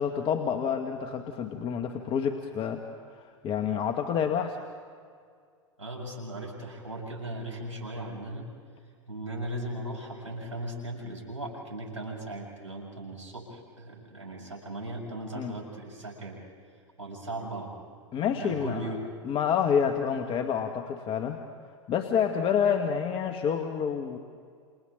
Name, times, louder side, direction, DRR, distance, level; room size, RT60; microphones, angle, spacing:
voice 1, 0.0-2.8 3.2-4.6 15.3-15.5 18.1-18.8 19.2-21.4 21.9-24.2, left 7 dB, 35° left, 5 dB, 1.5 m, -28 dB
voice 2, 5.8-8.5 9.1-16.4 16.7-17.7 18.3-19.1, right 1 dB, 90° right, -2 dB, 7.5 m, -38 dB
29.5 x 28.5 x 3.9 m, 2.1 s
hypercardioid pair, 95°, 16 cm